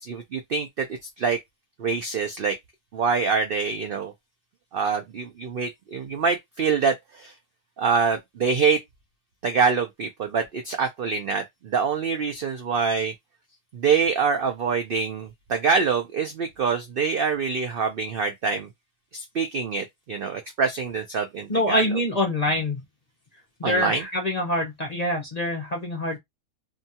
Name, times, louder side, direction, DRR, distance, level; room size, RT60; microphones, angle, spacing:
voice 1, 0.0-0.9 1.2-1.4 1.8-2.6 2.9-4.1 4.7-7.3 7.8-8.8 9.4-13.1 13.7-18.7 19.1-21.8 23.6-24.0, right 5 dB, 75° right, 0.5 m, -25 dB
voice 2, 21.5-22.8 23.6-26.2, left 1 dB, 50° left, 0.5 m, -25 dB
2.7 x 2.3 x 2.7 m
omnidirectional pair, 1.6 m